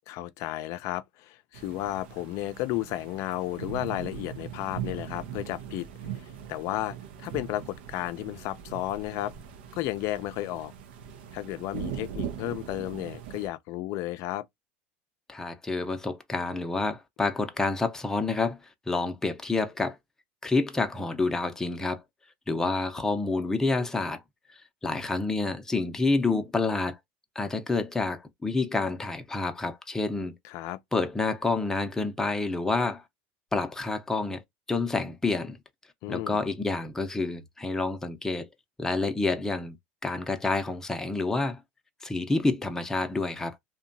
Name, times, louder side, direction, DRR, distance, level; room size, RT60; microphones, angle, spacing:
voice 1, 0.1-5.9 6.2-9.3 9.7-10.7 11.3-14.4 30.4-30.8 36.0-36.4, left 15 dB, 60° left, 0.4 m, -33 dB
sound 1, 1.5-13.5, right 9 dB, 85° right, 0.5 m, -40 dB
voice 2, 15.3-18.6 18.9-20.0 20.4-22.0 22.5-24.2 24.8-27.0 27.4-30.3 30.9-33.0 33.5-34.4 34.7-35.6 36.1-38.5 38.8-39.8 40.0-41.6 42.0-43.6, left 3 dB, 10° left, 0.6 m, -28 dB
2.7 x 2.2 x 2.6 m
supercardioid pair, 120°, 6 cm